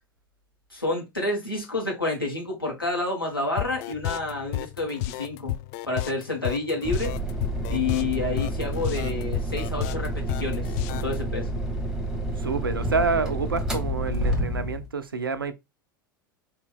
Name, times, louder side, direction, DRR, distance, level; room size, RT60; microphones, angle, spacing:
voice 1, 0.7-5.6 5.9-7.1 7.7-11.5, left 3 dB, 85° left, 1.7 m, -29 dB
sound 1, 3.6-11.1, left 16 dB, 45° left, 0.3 m, -32 dB
sound 2, 6.8-14.9, right 1 dB, 5° right, 1.2 m, -29 dB
voice 2, 12.4-15.5, right 4 dB, 80° right, 0.6 m, -28 dB
4.3 x 3.0 x 3.5 m
figure-of-eight pair, 85°, 12 cm